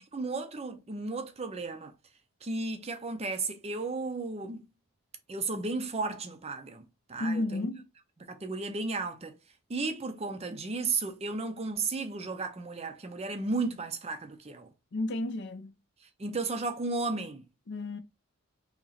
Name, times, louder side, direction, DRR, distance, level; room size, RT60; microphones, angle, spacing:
voice 1, 0.1-1.9 2.4-4.6 5.3-7.7 8.3-9.4 9.7-14.7 16.2-17.4, right 3 dB, 25° right, 0.5 m, -34 dB
voice 2, 7.2-7.9 14.9-15.7 17.7-18.0, left 2 dB, 50° left, 0.5 m, -32 dB
2.9 x 2.8 x 3.9 m
head